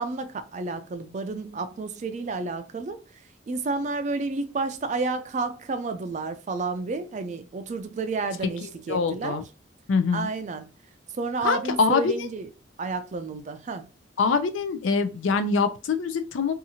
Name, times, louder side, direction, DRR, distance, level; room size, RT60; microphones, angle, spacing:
voice 1, 0.0-3.0 3.5-9.5 10.1-10.7 11.2-12.5 12.8-13.9, right 3 dB, 40° right, 0.3 m, -30 dB
voice 2, 8.9-9.4 9.9-10.3 11.4-12.1 14.2-16.5, left 4 dB, 90° left, 0.4 m, -24 dB
2.8 x 2.4 x 2.7 m
head